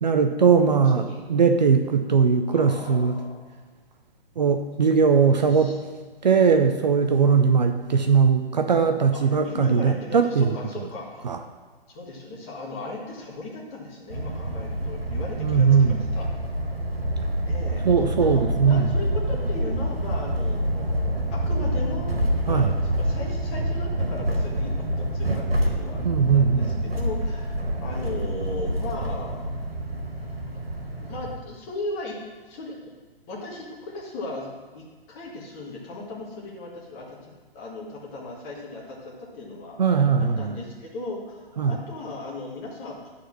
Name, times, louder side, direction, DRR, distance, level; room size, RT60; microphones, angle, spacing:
voice 1, 0.0-3.2 4.4-5.7 6.2-10.5 11.2-11.4 15.4-16.0 17.8-18.9 22.5-22.7 26.0-26.8 39.8-40.6 41.6-41.7, right 6 dB, 45° right, 6 dB, 0.6 m, -20 dB
voice 2, 0.7-1.2 2.4-3.4 5.4-5.8 9.1-11.5 11.9-16.3 17.5-17.8 18.2-26.0 26.3-26.7 26.9-29.5 31.0-32.2 32.4-32.8 33.3-34.5 34.7-37.2 37.5-43.1, left 2 dB, 20° left, -2 dB, 1.7 m, -37 dB
sound 1, 14.1-31.4, right 1 dB, 70° right, 1.9 m, -27 dB
11.5 x 4.3 x 6.0 m, 1.4 s
figure-of-eight pair, 130°, 30 cm